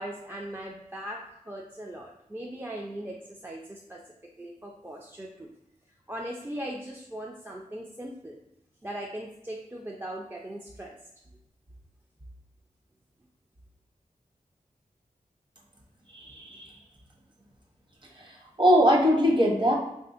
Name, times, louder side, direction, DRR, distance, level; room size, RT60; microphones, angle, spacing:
voice 1, 0.0-4.0 4.4-5.5 6.1-8.4 8.8-11.0, right 1 dB, 15° right, -1 dB, 0.3 m, -39 dB
voice 2, 16.1-16.7 18.6-19.7, equal, 35° right, -1 dB, 0.8 m, -21 dB
3.5 x 2.5 x 2.4 m, 0.83 s
wide cardioid pair, 75°, 14 cm